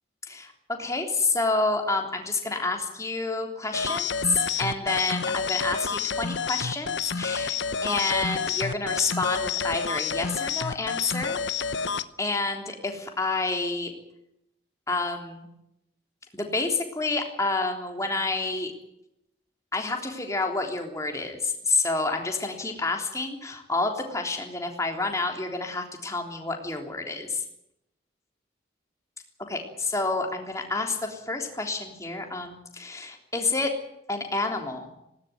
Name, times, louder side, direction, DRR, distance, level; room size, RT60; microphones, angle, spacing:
voice 1, 0.2-11.4 12.2-13.9 14.9-15.5 16.3-18.7 19.7-27.4 29.5-33.8 34.1-34.9, left 3 dB, 15° left, 3 dB, 3.5 m, -29 dB
sound 1, 3.7-12.1, left 6 dB, 70° left, 0.9 m, -29 dB
19.5 x 18.5 x 9.4 m, 0.83 s
head